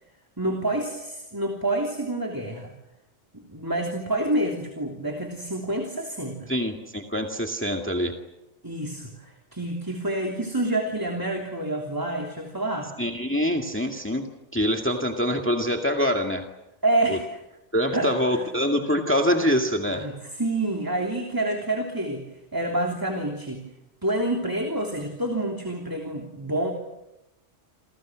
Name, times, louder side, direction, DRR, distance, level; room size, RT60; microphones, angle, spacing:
voice 1, 0.4-2.7 3.3-6.5 8.6-12.9 16.8-17.4 17.9-18.5 19.9-22.2 22.5-23.6 24.0-26.7, right 1 dB, 15° right, 2 dB, 3.2 m, -28 dB
voice 2, 6.5-8.1 13.0-14.2 14.5-16.4 17.1-17.2 17.7-20.1, equal, 10° left, 3 dB, 2.1 m, -25 dB
29.5 x 29.0 x 6.4 m, 0.89 s
omnidirectional pair, 1.2 m